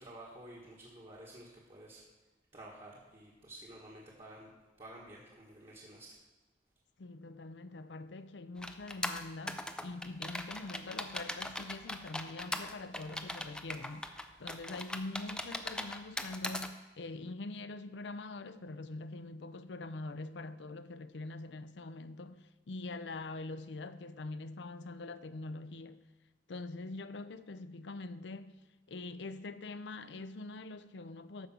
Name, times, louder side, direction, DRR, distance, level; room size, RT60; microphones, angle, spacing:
voice 1, 0.0-2.0 2.5-4.5 4.8-6.2, right 1 dB, 35° right, 1.6 m, -51 dB
voice 2, 7.0-14.1 14.4-26.0 26.5-28.6 28.9-31.5, left 2 dB, 80° left, 0.6 m, -44 dB
sound 1, 8.6-16.7, left 1 dB, 5° left, 0.5 m, -40 dB
13.5 x 5.2 x 6.1 m
head